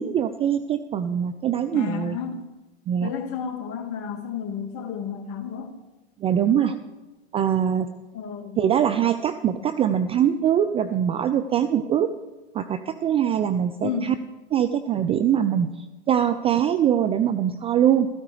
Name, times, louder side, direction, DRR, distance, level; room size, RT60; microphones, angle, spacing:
voice 1, 0.0-2.2 2.9-3.1 6.2-6.8 7.3-7.9 8.6-12.1 12.5-14.1 14.5-15.7 16.1-18.1, right 9 dB, 20° right, 10 dB, 0.3 m, -22 dB
voice 2, 1.7-2.4 3.0-5.7 8.1-8.6 13.8-14.1, left 7 dB, 40° left, 6 dB, 1.7 m, -31 dB
15.5 x 13.5 x 3.3 m, 1.1 s
hypercardioid pair, 105°, 34 cm